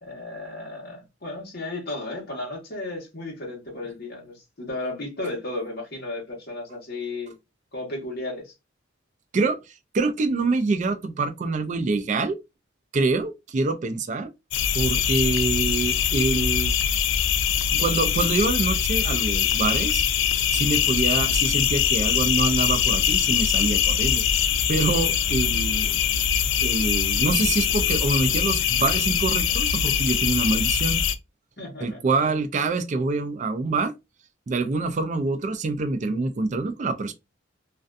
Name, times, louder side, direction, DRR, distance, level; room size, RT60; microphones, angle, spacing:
voice 1, 0.0-7.3 7.7-8.5 31.6-32.4, left 2 dB, 50° left, 1.0 m, -34 dB
voice 2, 9.9-12.4 12.9-14.3 14.7-16.7 17.7-20.0 20.5-24.2 24.7-26.0 26.6-31.0 31.8-33.9 34.5-37.1, right 3 dB, 35° right, 0.3 m, -25 dB
sound 1, 14.5-31.1, left 8 dB, 65° left, 0.3 m, -23 dB
2.5 x 2.2 x 2.4 m
head